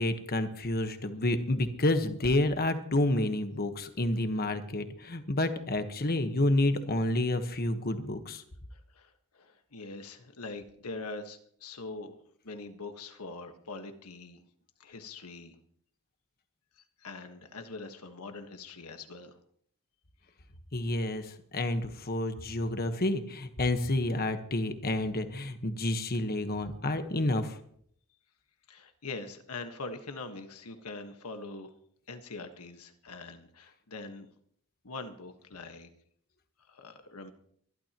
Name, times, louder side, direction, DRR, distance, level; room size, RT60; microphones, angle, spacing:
voice 1, 0.0-8.4 20.7-27.6, left 1 dB, 45° left, 8 dB, 1.3 m, -29 dB
voice 2, 8.7-12.1 12.4-14.4 14.8-15.5 16.8-19.4 28.7-31.7 32.1-34.3 34.8-35.9 36.7-37.3, left 3 dB, 80° left, 7 dB, 1.5 m, -43 dB
23.5 x 12.5 x 3.0 m, 0.64 s
head